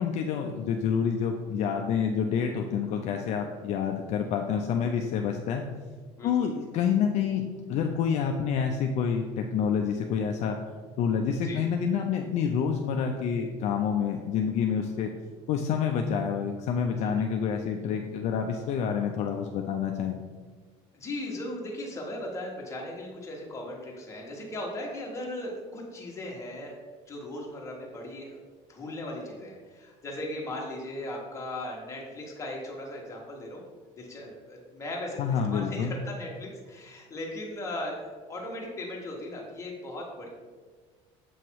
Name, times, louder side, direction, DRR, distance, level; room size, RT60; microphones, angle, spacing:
voice 1, 0.0-5.6 6.2-10.6 11.0-15.1 15.5-20.2 35.2-35.9, left 7 dB, 55° left, 3 dB, 0.5 m, -28 dB
voice 2, 6.2-6.5 11.4-11.6 17.0-17.1 20.9-26.8 27.1-28.4 28.7-33.6 34.0-40.3, left 1 dB, 20° left, -2 dB, 1.4 m, -38 dB
7.1 x 3.0 x 4.6 m, 1.5 s
cardioid pair, 130°, 14 cm